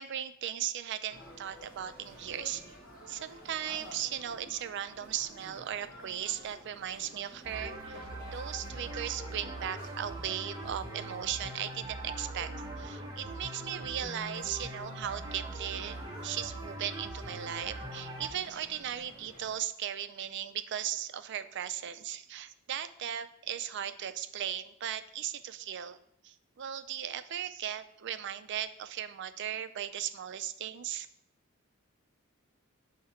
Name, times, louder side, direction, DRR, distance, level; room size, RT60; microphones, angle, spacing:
voice 1, 0.0-2.6 3.1-26.0 26.2-31.1, right 10 dB, 55° right, 11 dB, 0.4 m, -37 dB
sound 1, 1.1-19.6, equal, 40° left, 1.2 m, -52 dB
sound 2, 7.4-18.3, right 2 dB, 15° right, 0.9 m, -41 dB
8.1 x 2.8 x 4.3 m, 0.70 s
head